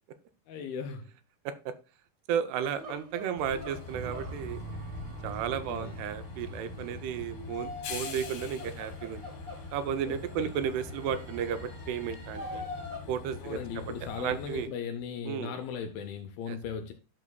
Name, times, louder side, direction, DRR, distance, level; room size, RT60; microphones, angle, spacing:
voice 1, 0.5-1.1 5.6-6.0 10.0-10.5 13.4-16.9, left 6 dB, 80° left, 2.2 m, -38 dB
voice 2, 2.3-4.6 5.2-9.2 9.7-12.6 13.1-14.7 15.2-15.5 16.5-16.6, right 8 dB, 80° right, 2.6 m, -33 dB
sound 1, 2.6-13.0, left 2 dB, 20° right, 1.4 m, -45 dB
Train, 3.4-14.7, left 4 dB, 65° left, 2.9 m, -43 dB
sound 2, 3.9-7.9, right 3 dB, 65° right, 2.0 m, -44 dB
10.5 x 6.2 x 2.2 m
omnidirectional pair, 4.8 m